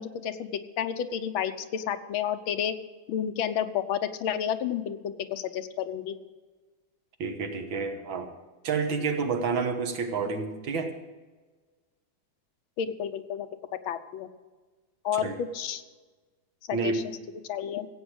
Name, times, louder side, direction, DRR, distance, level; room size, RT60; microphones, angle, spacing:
voice 1, 0.0-2.8 3.1-6.1 12.8-13.5 13.9-14.3 15.0-15.8 16.7-17.0 17.5-17.9, left 8 dB, 85° left, 8 dB, 1.6 m, -31 dB
voice 2, 7.2-8.3 8.6-10.9 15.1-15.4 16.7-17.0, right 4 dB, 75° right, 5 dB, 2.1 m, -29 dB
16.0 x 8.1 x 6.4 m, 1.3 s
omnidirectional pair, 2.2 m